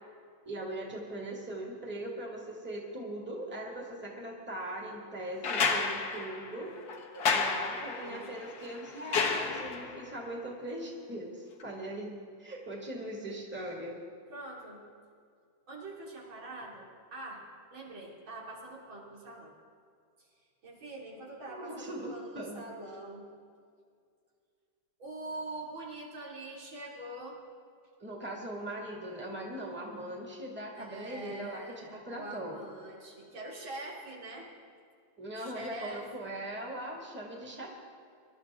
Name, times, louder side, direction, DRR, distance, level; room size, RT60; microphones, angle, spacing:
voice 1, 0.4-6.7 7.3-14.0 21.5-22.6 28.0-32.6 35.2-37.7, right 1 dB, 5° right, -1 dB, 2.0 m, -40 dB
sound 1, 5.4-10.1 11.6-11.7, left 5 dB, 55° left, 1.6 m, -32 dB
voice 2, 7.4-8.4 14.3-14.8 15.7-17.5 17.7-19.5 20.2-20.3 20.6-23.3 25.0-27.4 30.8-34.5 35.3-36.3, right 2 dB, 80° right, -4 dB, 3.7 m, -44 dB
23.5 x 12.5 x 3.7 m, 2.2 s
omnidirectional pair, 2.2 m